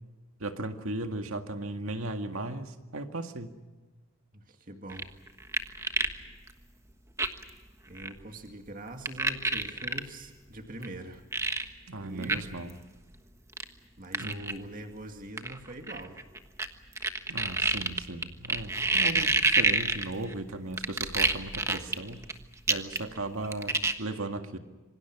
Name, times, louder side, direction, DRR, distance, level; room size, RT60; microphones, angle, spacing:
voice 1, 0.4-3.5 11.9-12.8 14.2-14.7 17.3-22.2 22.7-24.6, right 2 dB, 75° right, 6 dB, 2.0 m, -36 dB
voice 2, 4.3-5.1 7.9-11.2 11.7-12.5 14.0-16.2, right 1 dB, 40° right, 4 dB, 2.2 m, -43 dB
sound 1, 4.9-6.2 6.5-6.6 7.2-7.5 8.0-8.1 9.1-10.0 10.8-10.9 11.3-11.6 12.2-12.4 12.7-12.8 13.5-13.6 14.1-14.5 15.4-16.7 17.0-20.3 20.8-22.3 22.7-23.2 23.4-23.9, right 3 dB, 15° right, 1.3 m, -27 dB
26.5 x 25.0 x 6.1 m, 1.3 s
head